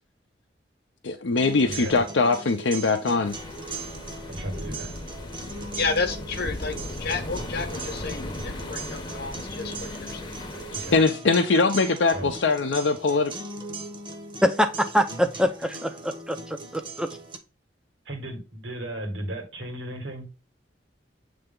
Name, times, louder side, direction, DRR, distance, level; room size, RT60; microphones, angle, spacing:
voice 1, 1.0-3.3 10.9-13.3, left 3 dB, 80° left, 0.6 m, -22 dB
sound 1, 1.4-17.4, right 3 dB, 25° right, 0.9 m, -39 dB
voice 2, 1.7-2.0 4.3-4.9 10.7-11.0 12.1-12.4 18.1-20.3, right 1 dB, 75° right, 1.9 m, -35 dB
sound 2, 3.2-11.0, left 1 dB, 25° left, 0.8 m, -37 dB
voice 3, 5.7-10.6, left 4 dB, 60° left, 1.0 m, -31 dB
voice 4, 14.4-17.1, equal, 5° right, 0.5 m, -25 dB
7.8 x 3.4 x 3.7 m
head